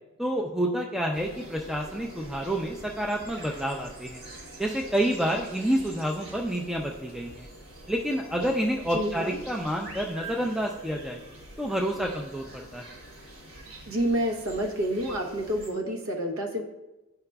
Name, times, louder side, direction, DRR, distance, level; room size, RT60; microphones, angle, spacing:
voice 1, 0.2-4.2 4.6-7.5 7.9-11.2 11.6-12.9, right 1 dB, ahead, 0 dB, 0.3 m, -29 dB
sound 1, 1.1-15.7, right 1 dB, 60° right, 1.8 m, -45 dB
voice 2, 8.9-9.4 13.9-16.6, right 1 dB, 90° right, 2 dB, 0.9 m, -29 dB
9.6 x 4.8 x 2.3 m, 1.0 s
head